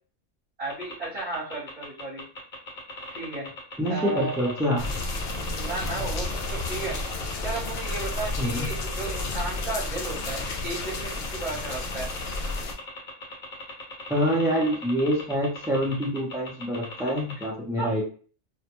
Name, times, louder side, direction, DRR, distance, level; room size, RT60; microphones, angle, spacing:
voice 1, 0.6-2.2 3.1-3.5 3.9-4.5 5.5-7.0 7.4-12.1 17.8-18.0, right 2 dB, 30° right, -9 dB, 1.1 m, -34 dB
sound 1, 0.7-17.4, left 2 dB, 50° left, 1.0 m, -39 dB
voice 2, 3.8-4.9 8.4-8.7 14.1-18.0, equal, 5° right, -3 dB, 0.4 m, -26 dB
sound 2, 4.8-12.7, left 2 dB, 65° left, 0.8 m, -32 dB
2.4 x 2.2 x 2.9 m, 0.41 s
omnidirectional pair, 1.2 m